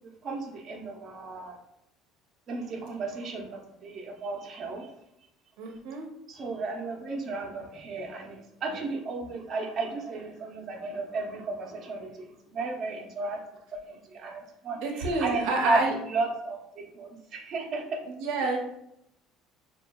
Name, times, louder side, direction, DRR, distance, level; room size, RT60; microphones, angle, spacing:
voice 1, 0.0-1.6 2.5-4.9 6.3-13.4 13.7-18.0 18.4-18.6, right 3 dB, 40° right, 0 dB, 0.8 m, -34 dB
voice 2, 5.6-6.1 14.8-15.9 18.2-18.6, right 3 dB, 80° right, 1 dB, 0.7 m, -28 dB
6.5 x 2.4 x 2.3 m, 0.78 s
cardioid pair, 130°, 0 cm